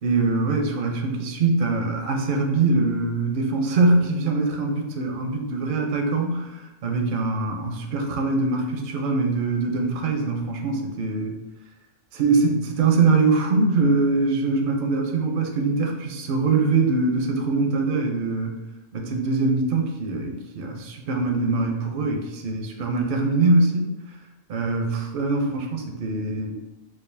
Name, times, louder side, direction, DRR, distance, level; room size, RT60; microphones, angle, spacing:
voice 1, 0.0-11.4 12.1-18.6 18.9-23.9 24.5-26.6, right 3 dB, 65° right, 2 dB, 0.5 m, -23 dB
3.8 x 2.2 x 3.2 m, 1.1 s
omnidirectional pair, 1.5 m